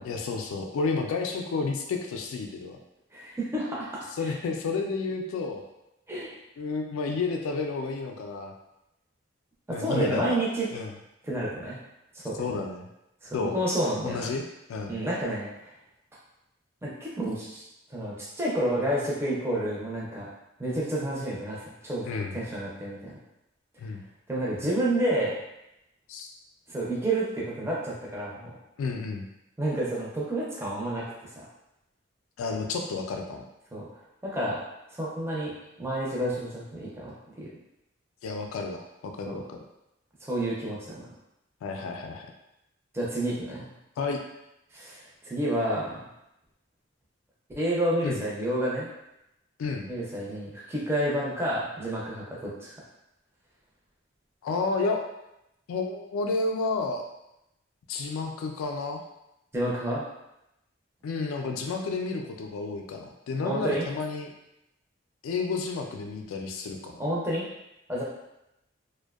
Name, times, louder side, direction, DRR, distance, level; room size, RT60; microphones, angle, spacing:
voice 1, 0.0-2.8 4.2-5.6 6.6-8.5 9.7-10.4 10.7-10.9 12.4-12.8 13.3-13.6 14.0-14.4 14.7-15.0 22.1-22.4 23.8-24.0 26.1-26.3 28.8-29.3 32.4-33.4 38.2-39.6 41.6-42.3 44.0-44.2 48.0-48.2 49.6-49.9 54.4-55.0 55.7-57.1 57.9-59.0 61.0-64.3 65.2-67.0, left 4 dB, 90° left, 3 dB, 0.3 m, -31 dB
voice 2, 3.1-4.0 6.1-6.3 9.7-10.7 11.2-11.8 12.1-12.6 13.2-14.3 14.9-15.5 16.8-17.6 17.9-20.3 20.6-22.0 22.3-23.2 24.3-25.4 26.7-28.5 29.6-31.4 33.7-33.9 34.2-34.6 35.0-35.5 35.8-37.5 39.3-39.4 40.3-41.1 42.9-43.7 44.7-46.0 47.6-48.9 49.9-52.7 59.5-60.0 63.4-63.8 67.0-67.4 67.9-68.0, right 1 dB, 10° right, -6 dB, 0.4 m, -30 dB
2.5 x 2.1 x 2.3 m, 0.87 s
head